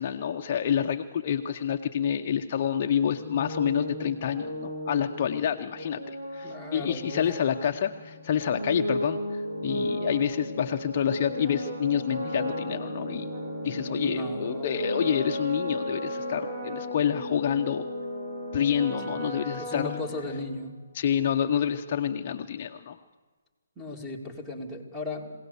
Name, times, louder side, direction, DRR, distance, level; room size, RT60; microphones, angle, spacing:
voice 1, 0.0-13.3 13.6-17.8 18.5-19.9 20.9-23.0, left 8 dB, 35° left, 5 dB, 0.8 m, -28 dB
sound 1, 3.1-20.7, equal, 70° right, 7.7 m, -35 dB
voice 2, 6.4-7.3 13.7-14.7 19.1-20.8 23.8-25.3, left 2 dB, 5° right, 1 dB, 2.5 m, -36 dB
22.0 x 17.5 x 6.9 m, 1.4 s
hypercardioid pair, 160°, 0 cm